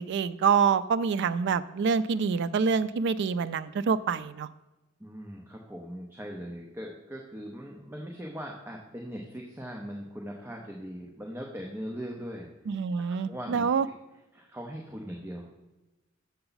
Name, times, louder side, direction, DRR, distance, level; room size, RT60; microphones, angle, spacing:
voice 1, 0.0-4.5 12.7-13.9, right 6 dB, 55° right, 15 dB, 0.3 m, -26 dB
voice 2, 5.0-12.5 13.1-13.9 14.3-15.6, equal, 10° right, -1 dB, 0.7 m, -40 dB
6.8 x 6.8 x 3.9 m, 1.1 s
head